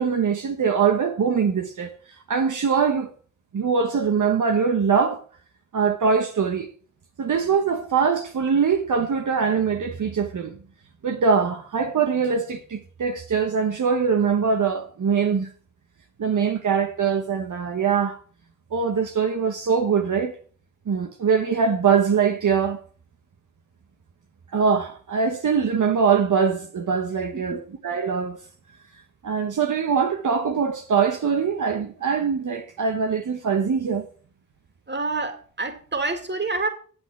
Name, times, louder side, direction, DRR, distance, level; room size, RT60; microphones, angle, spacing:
voice 1, 0.0-3.1 3.5-5.2 5.7-6.7 7.2-10.6 11.0-15.5 16.2-18.2 18.7-20.4 20.9-22.8 24.5-28.4 29.2-34.1, right 6 dB, 65° right, 1.1 m, -22 dB
voice 2, 34.9-36.7, right 3 dB, 35° right, 2.1 m, -28 dB
9.0 x 8.0 x 6.0 m
cardioid pair, 75°, 33 cm